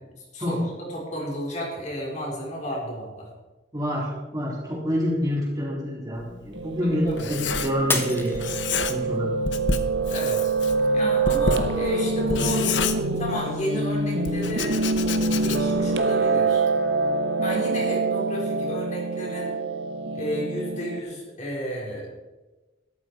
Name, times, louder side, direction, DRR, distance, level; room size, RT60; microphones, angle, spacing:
voice 1, 0.1-3.3 7.0-7.3 10.1-10.5 10.9-12.7 13.2-14.8 15.4-16.7 17.4-19.6 20.1-22.1, equal, 40° left, -2 dB, 3.9 m, -32 dB
voice 2, 3.7-8.6 8.9-9.3, equal, 20° right, -4 dB, 4.0 m, -27 dB
Writing, 6.2-8.1 8.3-9.2 9.4-13.6 14.2-15.9, left 5 dB, 80° left, 1.0 m, -30 dB
Piano, 6.5-21.0, right 3 dB, 70° right, 1.2 m, -25 dB
Shatter, 7.9-9.2 9.7-10.2 10.7-10.8, left 3 dB, 10° left, 1.2 m, -29 dB
13.0 x 12.5 x 4.6 m, 1.1 s
head